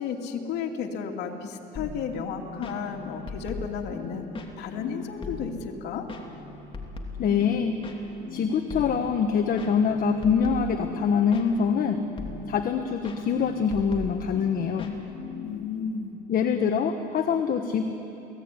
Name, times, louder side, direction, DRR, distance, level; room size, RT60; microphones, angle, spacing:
voice 1, 0.0-4.3 4.6-6.1 15.4-16.2, left 6 dB, 85° left, 2 dB, 2.7 m, -33 dB
sound 1, 1.8-15.7, left 4 dB, 30° left, 3.1 m, -39 dB
voice 2, 7.2-7.8 8.3-12.0 12.5-15.0 16.3-17.8, left 6 dB, 60° left, 6 dB, 1.5 m, -24 dB
29.5 x 18.5 x 9.9 m, 3.0 s
cardioid pair, 110°, 17 cm